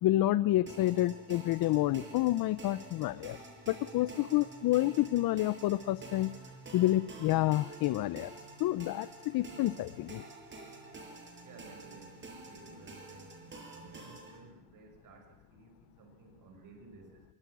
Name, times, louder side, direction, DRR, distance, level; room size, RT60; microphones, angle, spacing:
voice 1, 0.0-3.4 3.7-6.4 6.7-8.3 8.6-10.2, left 15 dB, 60° left, 16 dB, 0.8 m, -29 dB
sound 1, 0.7-14.4, right 2 dB, 30° right, 6.5 m, -49 dB
voice 2, 11.4-13.4 13.6-17.3, right 3 dB, 55° right, 4 dB, 6.8 m, -55 dB
24.5 x 22.0 x 6.3 m, 1.1 s
cardioid pair, 115°, 39 cm